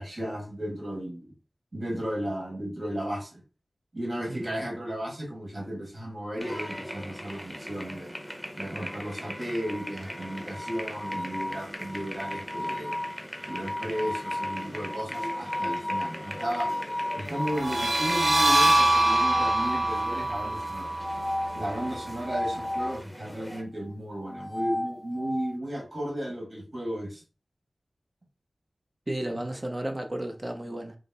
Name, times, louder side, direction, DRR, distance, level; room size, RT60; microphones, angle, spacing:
voice 1, 0.0-1.3 1.7-3.4 3.9-8.2 8.5-13.0 13.5-16.7 17.1-20.9 21.5-27.2 29.3-29.4, equal, 50° right, 1.7 m, -34 dB
voice 2, 4.3-4.6 29.1-31.0, right 1 dB, 30° right, 0.8 m, -33 dB
sound 1, 6.4-23.6, equal, 5° left, 1.0 m, -40 dB
sound 2, 9.6-17.7 19.0-20.3 21.0-23.0 24.2-25.5, left 1 dB, 30° left, 0.3 m, -34 dB
sound 3, 17.5-22.9, right 2 dB, 70° right, 1.1 m, -25 dB
5.0 x 2.1 x 4.0 m
wide cardioid pair, 55°, 0 cm